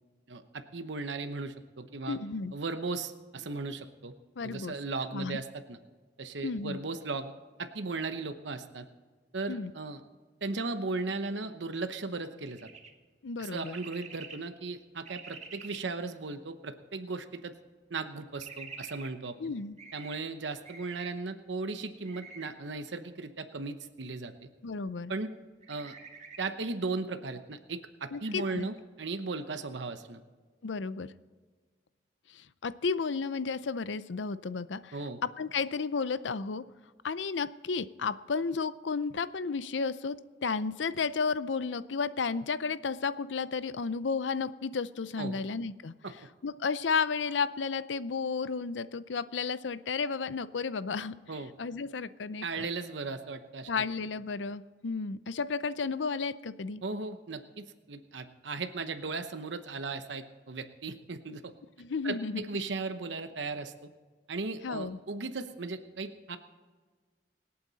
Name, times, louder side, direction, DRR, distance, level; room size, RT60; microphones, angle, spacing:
voice 1, 0.3-2.2 2.5-4.1 4.4-5.8 6.2-7.3 7.6-8.9 9.3-10.0 10.4-12.7 13.4-17.5 17.9-19.4 19.9-24.5 25.1-25.3 25.7-26.0 26.4-30.2 34.9-35.2 45.2-45.4 46.0-46.1 51.3-51.5 52.4-53.8 56.8-61.5 62.0-63.9 64.3-66.4, right 3 dB, 80° right, 8 dB, 0.9 m, -37 dB
voice 2, 2.1-2.5 4.4-4.7 5.1-5.4 6.4-6.8 9.5-9.7 13.2-13.8 19.4-19.8 24.6-25.1 28.1-28.7 30.6-31.1 32.3-35.0 35.4-36.6 37.0-45.9 46.4-51.1 51.6-52.7 53.7-56.8 61.8-62.4 64.6-65.0, left 5 dB, 85° left, 15 dB, 0.6 m, -33 dB
sound 1, 12.5-12.9 13.6-14.4 15.0-15.8 18.4-19.1 19.8-20.2 20.6-21.1 22.0-22.5 25.6-26.4 28.2-28.6, right 5 dB, 40° right, 1.7 m, -47 dB
26.0 x 8.7 x 4.1 m, 1.4 s
head